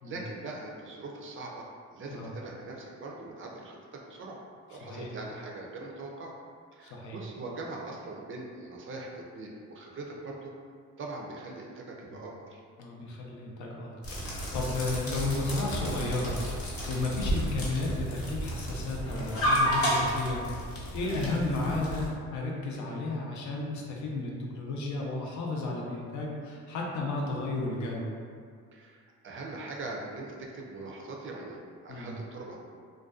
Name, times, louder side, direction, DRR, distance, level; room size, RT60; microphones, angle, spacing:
voice 1, 0.0-4.4 4.7-6.3 6.7-10.5 11.0-12.6 21.0-21.3 27.2-27.4 28.7-32.6, right 2 dB, 45° right, -1 dB, 0.4 m, -41 dB
voice 2, 4.8-5.1 6.8-7.2 12.1-12.2 12.8-20.7 20.9-28.1 31.9-32.2, left 2 dB, 75° left, -2 dB, 0.5 m, -33 dB
sound 1, 14.0-22.1, equal, 50° left, 0.8 m, -31 dB
2.4 x 2.2 x 2.3 m, 2.1 s
cardioid pair, 90°, 30 cm